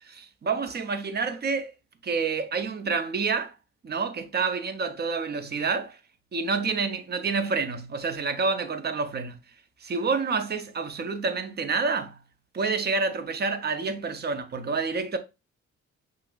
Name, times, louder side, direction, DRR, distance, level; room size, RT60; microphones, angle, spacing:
voice 1, 0.1-1.7 2.0-3.5 3.8-6.0 6.3-9.4 9.8-12.2 12.5-15.2, right 4 dB, 35° right, 0.6 m, -28 dB
5.7 x 2.0 x 2.3 m
cardioid pair, 90°, 30 cm